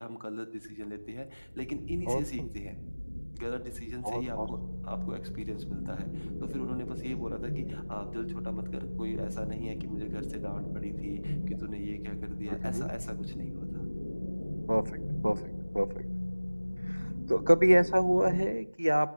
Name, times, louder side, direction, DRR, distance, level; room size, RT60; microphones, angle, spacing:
voice 1, 0.0-2.8 3.3-4.6 4.8-13.9, equal, 85° left, 8 dB, 1.6 m, -40 dB
sound 1, 0.6-18.5, equal, 70° left, 1.1 m, -46 dB
voice 2, 2.1-2.5 4.0-4.5 12.5-12.9 14.7-14.8 15.2-15.4 15.7-15.9 16.9-19.1, equal, 85° right, 16 dB, 0.6 m, -27 dB
sound 2, 4.1-18.5, left 1 dB, 20° left, 1.0 m, -37 dB
17.0 x 7.0 x 6.2 m, 0.87 s
figure-of-eight pair, 175°, 0 cm